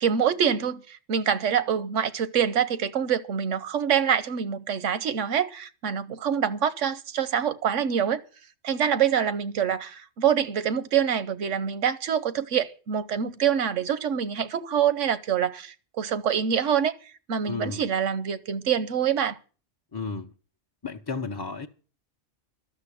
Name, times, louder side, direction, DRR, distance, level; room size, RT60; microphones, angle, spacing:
voice 1, 0.0-8.2 8.6-16.9 17.3-19.4, right 8 dB, 85° right, 1.2 m, -25 dB
voice 2, 17.4-17.8 19.9-20.3 20.8-21.7, left 4 dB, 25° left, 0.6 m, -33 dB
12.5 x 6.7 x 9.9 m
omnidirectional pair, 1.2 m